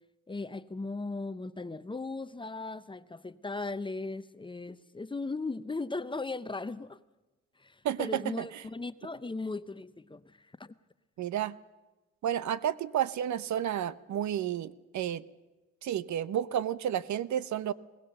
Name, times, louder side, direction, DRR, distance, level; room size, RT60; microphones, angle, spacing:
voice 1, 0.3-7.0 7.6-10.8, left 3 dB, 15° left, 0.7 m, -37 dB
voice 2, 7.8-8.4 11.2-11.5 12.2-15.2 15.8-17.7, right 10 dB, 70° right, 0.9 m, -31 dB
20.5 x 19.0 x 6.7 m
cardioid pair, 90°, 30 cm